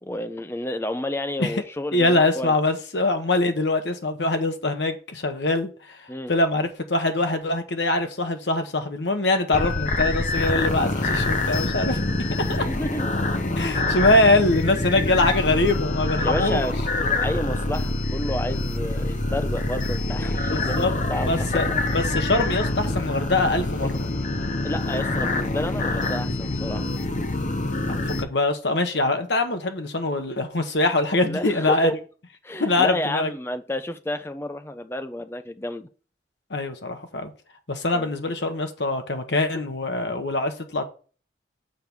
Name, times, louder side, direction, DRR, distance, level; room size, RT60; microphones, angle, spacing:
voice 1, 0.0-2.5 6.1-6.3 12.5-13.1 16.2-16.8 17.2-21.8 23.8-23.9 24.6-26.9 31.2-31.9 32.4-35.9 37.9-38.1, left 1 dB, 15° left, 0.5 m, -30 dB
voice 2, 1.9-6.0 6.3-12.0 12.5-12.6 13.6-16.6 20.4-20.9 21.2-24.1 27.9-31.9 32.6-33.3 36.5-37.3 37.7-40.8, left 2 dB, 75° left, 1.1 m, -23 dB
sound 1, 9.5-28.2, left 2 dB, 40° left, 0.8 m, -25 dB
6.6 x 4.7 x 5.4 m
head